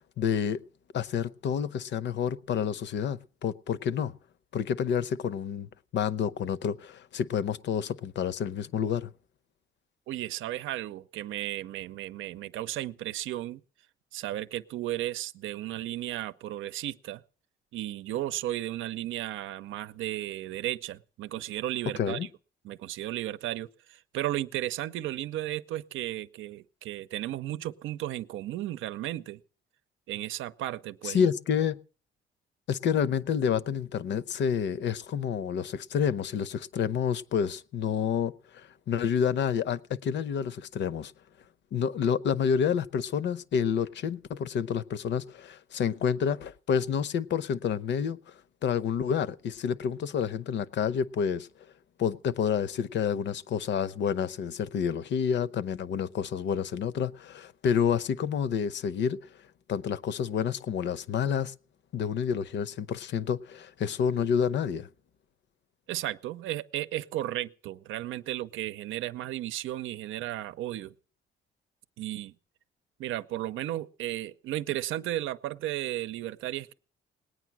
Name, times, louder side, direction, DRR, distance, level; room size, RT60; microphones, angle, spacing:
voice 1, 0.2-0.6 0.9-4.1 4.5-9.1 22.0-22.3 31.0-31.8 32.7-41.1 41.7-48.3 48.6-51.5 52.0-59.2 59.7-61.5 61.9-64.9, left 7 dB, 65° left, 0.8 m, -29 dB
voice 2, 10.1-13.6 14.1-17.2 17.7-22.2 22.6-29.4 30.1-31.3 65.9-70.9 72.0-72.3 73.0-76.7, right 14 dB, 85° right, 0.6 m, -34 dB
19.0 x 9.3 x 6.0 m
cardioid pair, 90°, 20 cm